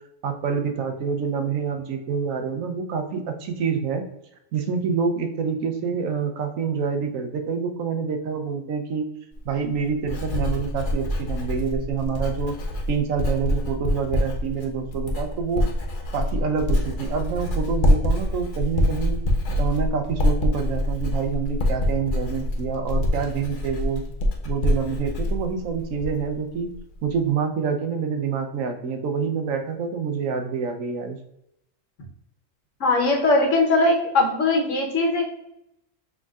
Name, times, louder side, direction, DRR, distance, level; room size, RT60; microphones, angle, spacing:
voice 1, 0.2-4.0 4.5-9.1 9.4-12.6 12.9-15.7 16.1-19.2 19.6-24.1 24.4-26.7 27.0-31.2, right 6 dB, 85° right, 5 dB, 1.1 m, -27 dB
Writing, 9.3-26.4 26.7-27.1, left 1 dB, 45° left, 0.8 m, -25 dB
voice 2, 32.8-35.2, left 2 dB, 70° left, 1 dB, 1.3 m, -20 dB
6.3 x 3.6 x 2.4 m, 0.82 s
omnidirectional pair, 1.4 m